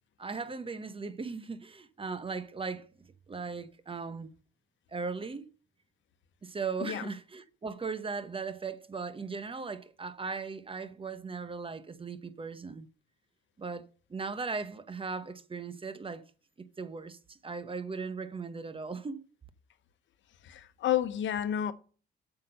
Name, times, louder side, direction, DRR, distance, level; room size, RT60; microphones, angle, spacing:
voice 1, 0.2-4.3 4.9-5.5 6.4-12.9 13.6-16.2 16.6-19.2, right 4 dB, 25° right, 0.9 m, -38 dB
voice 2, 20.5-21.7, left 10 dB, 70° left, 0.9 m, -30 dB
8.3 x 5.9 x 6.7 m
cardioid pair, 90°, 20 cm